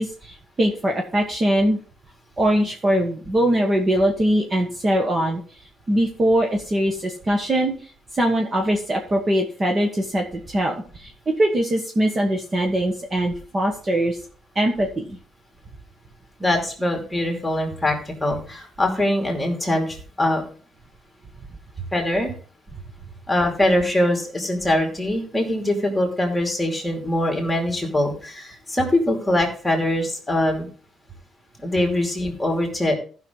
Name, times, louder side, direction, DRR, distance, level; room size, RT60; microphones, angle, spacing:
voice 1, 0.0-1.8 2.4-5.4 5.9-7.7 8.1-14.2 14.5-15.2, right 1 dB, 25° right, 2 dB, 1.3 m, -22 dB
voice 2, 16.4-20.4 21.9-22.4 23.3-30.7 31.6-32.9, left 1 dB, 5° left, 2 dB, 2.7 m, -23 dB
15.0 x 5.8 x 3.9 m, 0.40 s
cardioid pair, 135°, 0 cm